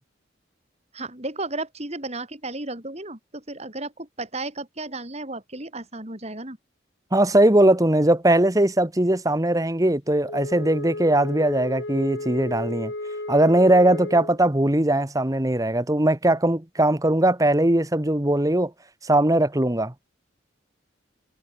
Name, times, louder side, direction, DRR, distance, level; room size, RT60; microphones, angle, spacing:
voice 1, 0.9-6.6, right 2 dB, 35° right, 4.2 m, -34 dB
voice 2, 7.1-12.9 13.3-18.7 19.0-19.9, right 1 dB, 20° right, 1.3 m, -20 dB
Wind instrument woodwind instrument, 10.2-14.4, left 2 dB, 65° left, 2.8 m, -33 dB
head